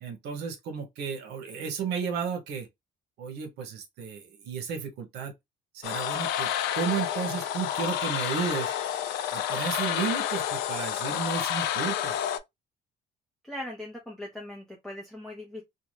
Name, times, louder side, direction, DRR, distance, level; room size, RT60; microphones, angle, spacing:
voice 1, 0.0-2.7 3.2-5.3 5.7-8.7 9.3-12.2, right 6 dB, 80° right, 0.9 m, -33 dB
sound 1, 5.8-12.4, left 10 dB, 90° left, 0.4 m, -29 dB
voice 2, 13.4-15.6, left 1 dB, ahead, 0.6 m, -39 dB
2.7 x 2.3 x 3.0 m
cardioid pair, 110°, 17 cm